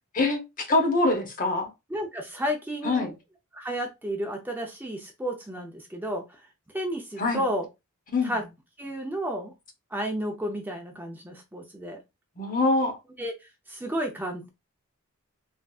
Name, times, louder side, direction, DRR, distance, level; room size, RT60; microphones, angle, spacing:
voice 1, 0.1-1.7 2.8-3.2 7.2-7.4 8.1-8.4 12.4-13.0, left 2 dB, 40° left, 0.8 m, -24 dB
voice 2, 1.9-3.1 3.5-6.2 6.7-7.7 8.2-8.4 8.8-9.5 9.9-12.0 13.2-13.3 13.7-14.5, equal, 10° right, 0.5 m, -32 dB
3.4 x 2.6 x 2.3 m
head